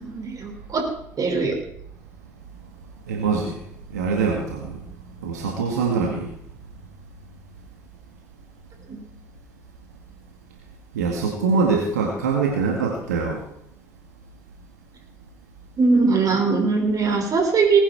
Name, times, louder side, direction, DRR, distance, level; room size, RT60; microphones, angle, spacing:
voice 1, 0.0-0.8 1.2-1.5 8.9-9.0 15.8-17.8, right 4 dB, 45° right, 1 dB, 5.7 m, -20 dB
voice 2, 3.1-3.5 3.9-4.8 5.2-6.3 10.9-13.4, right 4 dB, 85° right, 1 dB, 1.9 m, -23 dB
19.5 x 10.0 x 4.5 m, 0.74 s
hypercardioid pair, 55°, 9 cm